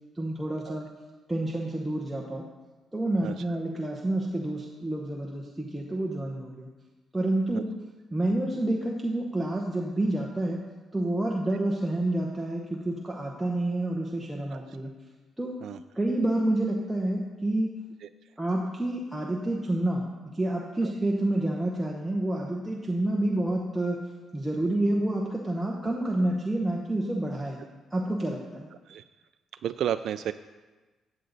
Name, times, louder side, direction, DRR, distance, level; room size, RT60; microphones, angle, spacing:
voice 1, 0.1-0.9 1.3-2.4 2.9-6.7 7.1-7.7 8.1-10.6 10.9-14.9 15.4-15.5 15.9-17.7 18.4-24.0 24.3-27.6 27.9-28.7, right 1 dB, 5° right, -2 dB, 1.0 m, -28 dB
voice 2, 29.6-30.3, right 10 dB, 65° right, 9 dB, 0.3 m, -32 dB
15.0 x 7.9 x 4.1 m, 1.3 s
cardioid pair, 140°, 0 cm